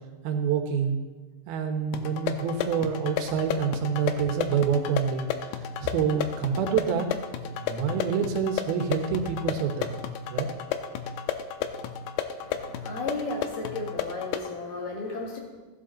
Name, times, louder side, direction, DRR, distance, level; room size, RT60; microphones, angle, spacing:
voice 1, 0.2-1.0 1.5-5.3 5.6-7.1 7.6-9.9 10.3-10.5, right 7 dB, 85° right, 4 dB, 3.0 m, -27 dB
sound 1, 1.9-14.5, left 8 dB, 85° left, 2.5 m, -33 dB
voice 2, 12.4-15.4, left 3 dB, 65° left, -1 dB, 3.4 m, -34 dB
15.0 x 10.5 x 3.9 m, 1.3 s
omnidirectional pair, 4.2 m